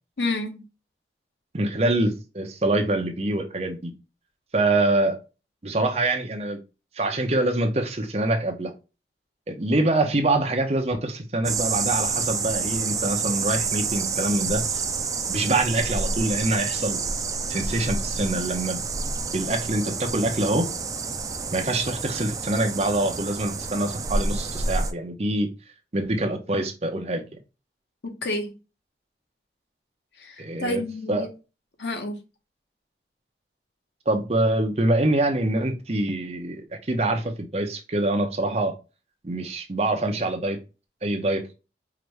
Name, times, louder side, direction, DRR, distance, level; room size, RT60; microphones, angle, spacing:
voice 1, 0.2-0.6 28.0-28.6 30.2-31.3 31.8-32.2, left 2 dB, 80° left, 1.0 m, -29 dB
voice 2, 1.5-3.9 4.5-5.2 5.6-6.6 7.0-8.7 9.5-14.8 15.3-17.0 17.5-18.8 19.3-20.7 21.5-25.5 25.9-27.2 30.4-30.8 31.1-31.3 34.1-36.6 36.9-38.7 39.2-40.6 41.0-41.5, right 2 dB, 35° right, 0.7 m, -25 dB
sound 1, 11.4-24.9, right 4 dB, 20° right, 0.3 m, -28 dB
4.9 x 2.6 x 3.2 m
head